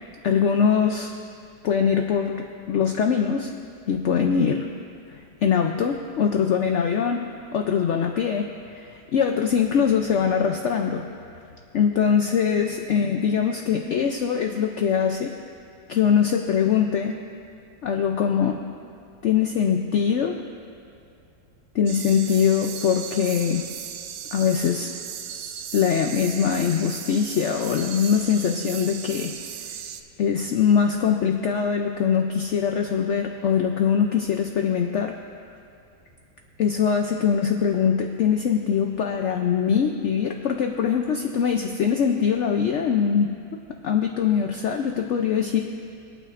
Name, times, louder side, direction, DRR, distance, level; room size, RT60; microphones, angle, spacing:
voice 1, 0.2-1.1 1.6-3.5 3.9-4.7 5.1-8.4 9.1-11.4 11.7-15.3 15.9-17.2 17.8-18.6 19.2-20.4 21.7-23.6 24.3-24.9 25.7-29.3 30.2-35.1 36.6-43.3 43.7-45.6, left 7 dB, 70° left, 3 dB, 0.6 m, -22 dB
sound 1, 21.9-30.0, right 8 dB, 85° right, 1.2 m, -36 dB
24.5 x 9.0 x 2.5 m, 2.4 s
omnidirectional pair, 1.9 m